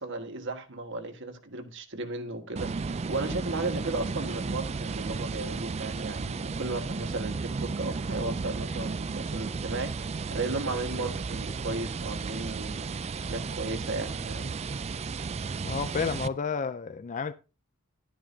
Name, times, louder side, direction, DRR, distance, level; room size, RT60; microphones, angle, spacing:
voice 1, 0.0-14.5, right 2 dB, 60° right, 1.5 m, -35 dB
sound 1, 2.6-16.3, right 4 dB, 30° right, 0.4 m, -34 dB
voice 2, 15.6-17.3, left 5 dB, 35° left, 0.4 m, -31 dB
11.5 x 10.0 x 2.7 m
head